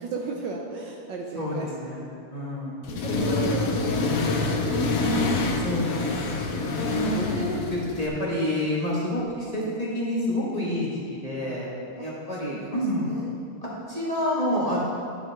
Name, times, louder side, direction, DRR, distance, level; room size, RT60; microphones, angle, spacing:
voice 1, 0.0-1.7 2.9-5.3 12.0-12.1 12.4-13.3, right 4 dB, 70° right, 1 dB, 1.2 m, -35 dB
voice 2, 1.3-2.8 3.1-3.5 5.6-13.1 13.6-14.8, left 1 dB, 20° left, -7 dB, 1.7 m, -29 dB
Accelerating revving vroom, 2.8-8.1, left 3 dB, 55° left, 1.1 m, -26 dB
12.0 x 8.4 x 3.6 m, 2.5 s
omnidirectional pair, 2.4 m